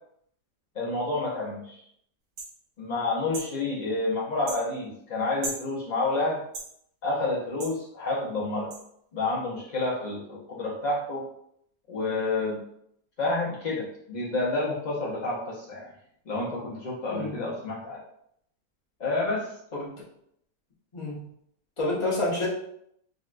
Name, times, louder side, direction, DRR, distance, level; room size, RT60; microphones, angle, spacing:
voice 1, 0.7-1.8 2.8-6.4 7.0-8.7 9.1-11.3 11.9-12.6 13.2-15.9 16.3-18.0 19.0-19.5, left 2 dB, 70° left, -6 dB, 0.4 m, -29 dB
sound 1, 2.4-2.5 3.3-3.5 4.5-4.6 5.4-5.6 6.5-6.7 7.6-7.8 8.7-8.8, right 2 dB, 90° right, 1.3 m, -36 dB
voice 2, 20.9-21.3 21.8-22.5, left 2 dB, 30° left, -6 dB, 0.7 m, -29 dB
3.9 x 2.1 x 2.4 m, 0.72 s
omnidirectional pair, 1.6 m